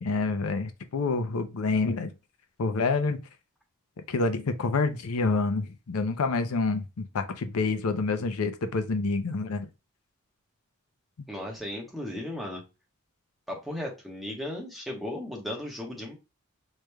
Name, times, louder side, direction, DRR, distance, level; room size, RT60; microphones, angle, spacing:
voice 1, 0.0-2.1 2.6-3.2 4.1-9.7, left 3 dB, 80° left, 0.5 m, -27 dB
voice 2, 11.3-12.6 13.5-16.1, left 1 dB, ahead, 1.1 m, -36 dB
4.9 x 3.1 x 2.2 m
head